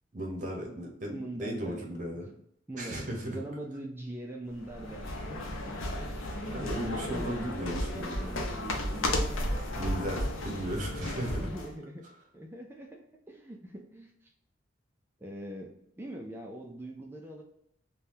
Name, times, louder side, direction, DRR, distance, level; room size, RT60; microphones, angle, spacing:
voice 1, 0.1-2.3 2.8-3.3 6.4-8.2 9.7-11.4, equal, 40° right, -1 dB, 0.7 m, -36 dB
voice 2, 1.1-2.2 2.7-5.0 6.6-9.1 11.0-12.1 12.3-14.3 15.2-17.4, right 1 dB, 10° right, 0 dB, 0.3 m, -43 dB
sound 1, 4.6-11.7, left 1 dB, 90° left, 0.6 m, -33 dB
2.7 x 2.2 x 3.4 m, 0.74 s
head